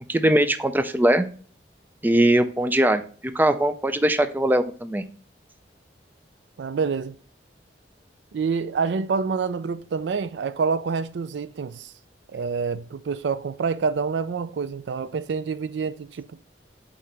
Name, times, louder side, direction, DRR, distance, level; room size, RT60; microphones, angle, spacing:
voice 1, 0.1-1.3 2.0-3.0 3.3-5.0, right 1 dB, 10° right, 0.4 m, -20 dB
voice 2, 6.6-7.1 8.3-11.9 12.3-16.3, right 5 dB, 80° right, 0.4 m, -27 dB
8.3 x 3.8 x 3.3 m
head